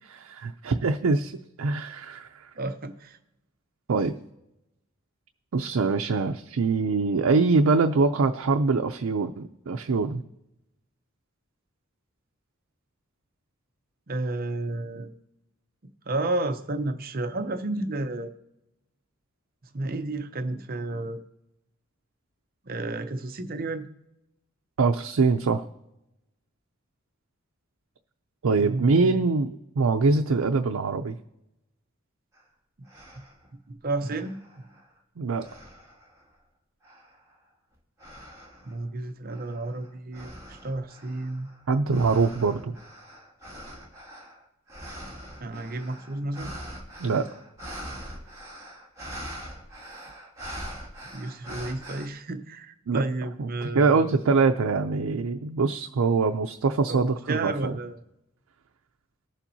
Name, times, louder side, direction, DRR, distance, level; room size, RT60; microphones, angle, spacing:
voice 1, 0.1-1.3 1.6-2.5 3.9-4.2 5.5-10.2 24.8-25.7 28.4-31.2 35.2-35.4 41.7-42.7 47.0-47.3 52.9-53.0 53.4-57.8, right 4 dB, 90° right, 5 dB, 0.5 m, -24 dB
voice 2, 2.6-3.2 14.1-15.1 16.1-18.3 19.7-21.2 22.6-23.9 28.6-29.2 32.8-32.9 33.7-34.6 38.6-41.5 45.4-46.5 51.1-54.2 56.9-58.0, right 2 dB, 45° right, 8 dB, 0.7 m, -32 dB
sound 1, 32.4-32.5 32.9-33.5 34.0-35.0 35.4-36.2 36.8-37.3 38.0-38.7 39.3-52.1, equal, 15° right, 2.2 m, -43 dB
20.5 x 7.2 x 2.7 m, 0.91 s
head